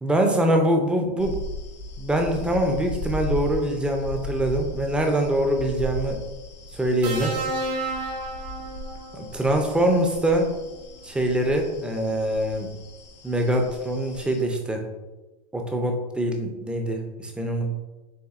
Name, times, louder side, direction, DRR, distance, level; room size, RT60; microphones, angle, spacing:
voice 1, 0.0-1.4 2.0-6.2 6.7-7.3 9.1-10.5 11.0-12.7 13.2-14.8 15.5-17.7, right 1 dB, 5° right, 3 dB, 0.4 m, -24 dB
sound 1, 1.2-14.4, left 1 dB, 90° left, 0.8 m, -37 dB
sound 2, 7.0-9.3 10.6-10.8, right 2 dB, 70° right, 1.4 m, -31 dB
6.8 x 2.5 x 2.4 m, 1.1 s
hypercardioid pair, 130°, 21 cm